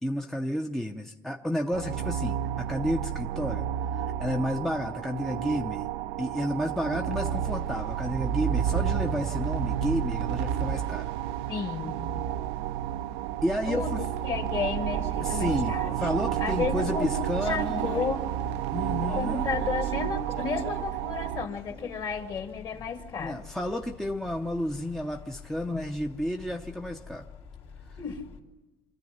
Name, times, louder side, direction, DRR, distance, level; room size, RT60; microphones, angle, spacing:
voice 1, 0.0-3.7 3.9-5.8 6.2-11.1 13.4-14.0 15.2-17.9 18.7-19.5 21.8-21.9 23.2-27.3, equal, 5° left, 2 dB, 0.7 m, -31 dB
sound 1, 1.7-21.5, right 10 dB, 85° right, 0.6 m, -30 dB
voice 2, 11.5-12.0 13.7-15.9 16.4-18.2 19.0-23.4 28.0-28.2, left 6 dB, 40° left, 5 dB, 2.1 m, -33 dB
sound 2, 14.1-28.4, left 6 dB, 55° left, 2.5 m, -46 dB
25.0 x 14.0 x 9.4 m, 1.2 s
cardioid pair, 140°, 11 cm